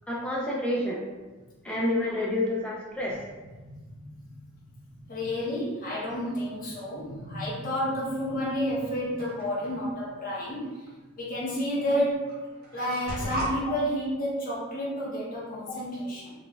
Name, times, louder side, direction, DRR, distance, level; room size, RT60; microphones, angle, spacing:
voice 1, 0.1-1.0 1.6-3.2 5.9-6.0, left 1 dB, 5° left, -3 dB, 0.3 m, -28 dB
voice 2, 3.6-4.2 4.8-10.9 11.2-12.3 12.7-16.3, equal, 40° left, -7 dB, 0.8 m, -31 dB
sound 1, 9.2-9.7 10.9-11.0 11.9-12.0 12.3-13.5, right 1 dB, 45° right, 0.9 m, -34 dB
4.0 x 2.3 x 2.3 m, 1.2 s
head